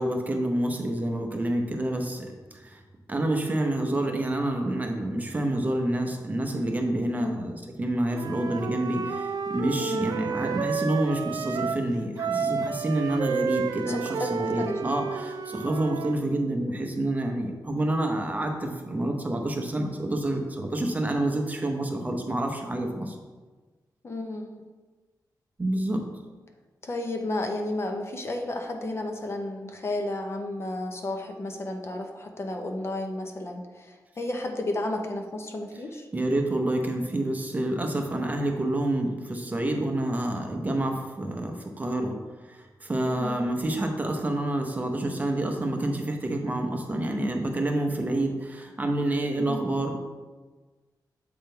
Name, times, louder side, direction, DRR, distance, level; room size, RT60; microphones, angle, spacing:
voice 1, 0.0-2.8 3.1-23.2 25.6-26.0 36.1-42.2 42.4-49.9, right 1 dB, 20° right, 3 dB, 0.7 m, -28 dB
Wind instrument woodwind instrument, 8.1-11.8 12.2-16.2, right 6 dB, 65° right, 0.4 m, -31 dB
voice 2, 13.9-14.8 24.0-24.5 26.8-36.1 43.0-43.4 49.4-49.6, left 2 dB, 35° left, 4 dB, 0.6 m, -32 dB
7.7 x 3.6 x 4.5 m, 1.3 s
wide cardioid pair, 140°, 7 cm